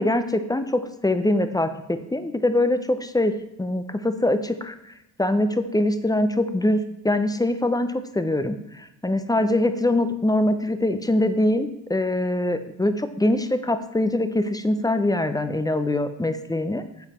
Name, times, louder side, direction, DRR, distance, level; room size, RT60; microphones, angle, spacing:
voice 1, 0.0-3.3 3.6-4.7 5.2-16.8, left 1 dB, 10° left, 10 dB, 0.8 m, -23 dB
9.1 x 7.1 x 4.4 m, 0.91 s
hypercardioid pair, 65°, 43 cm